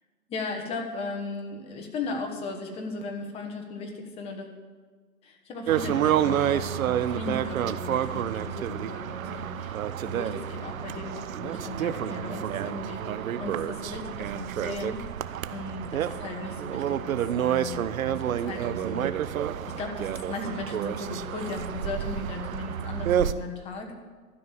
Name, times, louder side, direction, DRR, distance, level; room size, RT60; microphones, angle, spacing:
voice 1, 0.3-4.5 5.2-15.0 15.5-19.1 19.7-23.9, left 3 dB, 15° left, 3 dB, 1.2 m, -37 dB
sound 1, 5.7-23.3, right 10 dB, 60° right, 0.7 m, -29 dB
13.0 x 6.2 x 9.7 m, 1.5 s
hypercardioid pair, 150°, 46 cm